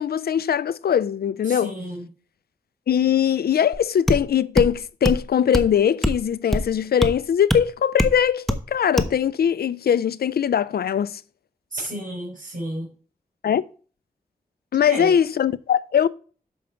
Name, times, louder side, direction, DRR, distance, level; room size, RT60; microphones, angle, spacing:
voice 1, 0.0-1.7 2.9-11.2 13.4-13.6 14.7-16.1, left 8 dB, 75° left, 0.4 m, -21 dB
voice 2, 1.4-2.1 11.7-12.9 14.8-15.1, right 1 dB, 55° right, 3.8 m, -31 dB
sound 1, 3.7-3.8 4.1-4.2 4.6-4.7 5.0-5.2 5.5-5.7 6.0-6.2 6.5-6.7 7.0-7.1 7.5-7.6 8.0-8.2 8.5-8.6 9.0-9.1, equal, ahead, 1.0 m, -22 dB
6.2 x 5.1 x 6.8 m
cardioid pair, 55°, 16 cm